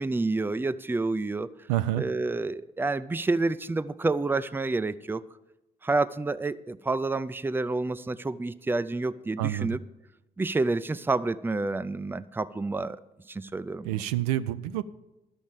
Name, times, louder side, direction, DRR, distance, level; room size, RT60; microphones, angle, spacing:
voice 1, 0.0-1.5 1.9-5.2 5.8-9.8 10.4-13.0 13.3-14.0, right 3 dB, 10° right, 15 dB, 0.5 m, -29 dB
voice 2, 1.7-2.0 9.4-9.8 13.8-14.8, right 14 dB, 80° right, 12 dB, 0.4 m, -28 dB
12.0 x 6.2 x 7.2 m, 0.96 s
hypercardioid pair, 45°, 19 cm